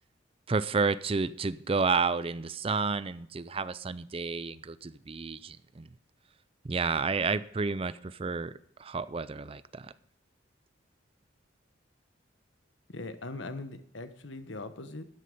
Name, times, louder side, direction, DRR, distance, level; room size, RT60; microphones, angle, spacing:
voice 1, 0.5-5.9 6.6-8.5 8.8-9.9, right 4 dB, 30° right, 16 dB, 0.5 m, -30 dB
voice 2, 12.9-15.0, left 2 dB, 75° left, 10 dB, 1.2 m, -40 dB
13.5 x 9.8 x 5.4 m, 0.65 s
head